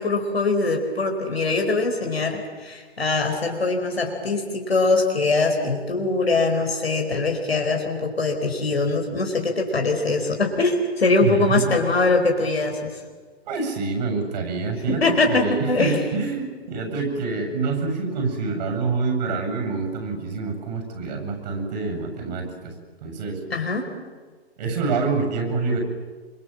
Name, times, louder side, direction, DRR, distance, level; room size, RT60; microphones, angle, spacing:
voice 1, 0.0-13.0 14.9-16.0 23.5-23.9, left 3 dB, 70° left, 2 dB, 4.5 m, -22 dB
voice 2, 11.2-11.7 13.5-22.7 23.0-23.4 24.6-25.8, right 4 dB, 45° right, 4 dB, 7.8 m, -26 dB
27.5 x 24.5 x 7.5 m, 1.4 s
figure-of-eight pair, 120°, 32 cm